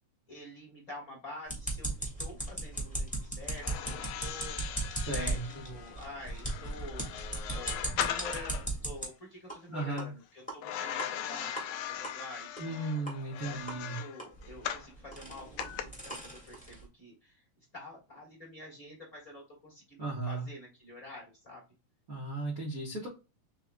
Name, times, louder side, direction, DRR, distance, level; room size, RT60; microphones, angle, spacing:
voice 1, 0.3-12.8 13.4-17.4 17.7-21.6, left 1 dB, 35° left, -4 dB, 1.4 m, -48 dB
sound 1, 1.5-9.0 9.5-9.6 10.0-10.1 10.5-10.6 11.0-11.1 11.6-11.7 12.0-12.1 12.6-12.7 13.1-13.2 13.7-13.8 14.2-16.8, right 2 dB, 5° left, 0.7 m, -37 dB
sound 2, 3.5-8.7 10.6-14.9 15.6-15.8, left 11 dB, 80° left, 1.9 m, -39 dB
voice 2, 5.0-5.6 9.7-10.1 12.6-14.0 20.0-20.5 22.1-23.1, right 2 dB, 70° right, -2 dB, 0.8 m, -36 dB
5.6 x 3.6 x 2.2 m, 0.29 s
omnidirectional pair, 3.6 m